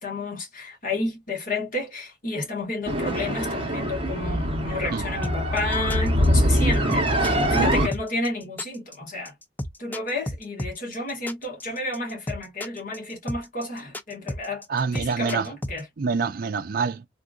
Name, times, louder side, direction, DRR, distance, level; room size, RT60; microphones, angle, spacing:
voice 1, 0.0-9.3 9.8-14.6 14.9-15.9, left 2 dB, 45° left, 1.6 m, -31 dB
sound 1, 2.9-7.9, equal, 30° right, 1.0 m, -23 dB
sound 2, 5.2-15.8, left 1 dB, 10° left, 0.4 m, -33 dB
voice 2, 14.7-15.5 16.0-17.1, right 5 dB, 50° right, 0.4 m, -26 dB
3.5 x 2.5 x 2.4 m
head